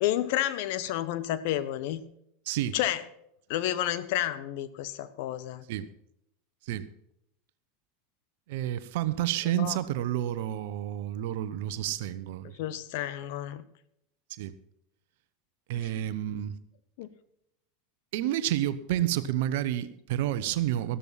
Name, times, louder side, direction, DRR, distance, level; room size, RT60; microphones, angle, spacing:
voice 1, 0.0-2.0 2.7-3.0 3.5-5.6 9.5-9.8 12.6-13.6 17.0-17.1, left 13 dB, 60° left, 1.1 m, -30 dB
voice 2, 2.5-2.8 5.7-5.9 6.6-6.9 8.5-12.5 14.3-14.6 15.7-16.6 18.1-21.0, right 12 dB, 65° right, 1.0 m, -30 dB
14.0 x 13.5 x 4.2 m
hypercardioid pair, 85°, 0 cm